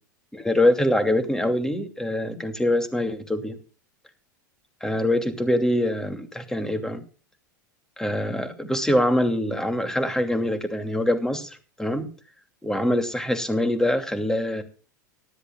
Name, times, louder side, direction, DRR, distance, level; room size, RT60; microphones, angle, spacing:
voice 1, 0.3-3.6 4.8-7.0 8.0-12.1 12.6-14.6, left 1 dB, 5° left, 7 dB, 2.7 m, -24 dB
18.0 x 13.5 x 2.4 m, 0.38 s
hypercardioid pair, 95°, 10 cm